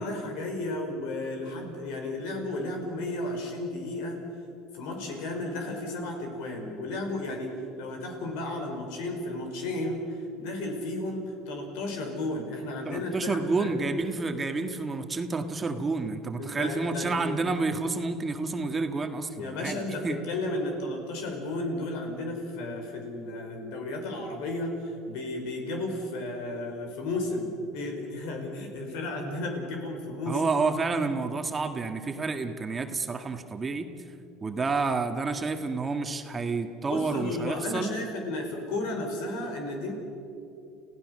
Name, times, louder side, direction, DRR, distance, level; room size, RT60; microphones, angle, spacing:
voice 1, 0.0-4.2 4.7-13.7 16.4-17.4 19.4-30.4 36.9-39.9, left 2 dB, 75° left, 3 dB, 5.0 m, -33 dB
voice 2, 12.8-20.2 30.3-33.9 34.4-37.9, right 3 dB, 25° right, 6 dB, 1.6 m, -29 dB
30.0 x 16.0 x 6.6 m, 2.7 s
supercardioid pair, 110°, 0 cm